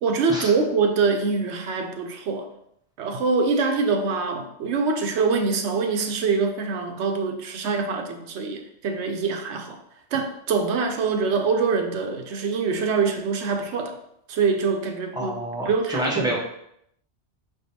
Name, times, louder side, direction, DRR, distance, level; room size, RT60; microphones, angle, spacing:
voice 1, 0.0-2.5 3.0-9.8 10.1-14.0 14.3-15.3 15.7-16.4, right 4 dB, 80° right, 5 dB, 0.9 m, -24 dB
voice 2, 15.2-16.4, equal, 5° right, -4 dB, 0.9 m, -28 dB
5.1 x 3.7 x 2.8 m, 0.73 s
omnidirectional pair, 1.2 m